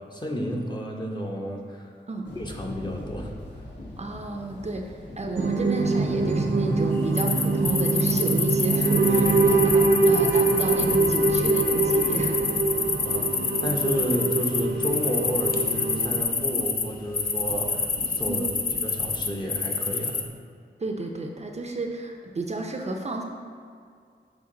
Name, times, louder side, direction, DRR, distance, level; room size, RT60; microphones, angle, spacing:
voice 1, 0.0-1.9 2.4-3.3 13.0-17.9 18.2-18.5 18.8-20.2, equal, 25° left, 0 dB, 0.8 m, -31 dB
sound 1, 2.2-19.3, left 1 dB, 75° left, 1.4 m, -42 dB
voice 2, 4.0-12.4 18.3-18.5 20.8-23.2, right 2 dB, 35° right, 2 dB, 0.5 m, -32 dB
sound 2, 5.3-16.2, right 3 dB, 75° right, 0.7 m, -24 dB
sound 3, 7.2-16.9 17.1-20.3, left 5 dB, 55° left, 0.5 m, -27 dB
7.1 x 4.4 x 3.8 m, 2.2 s
wide cardioid pair, 100°, 18 cm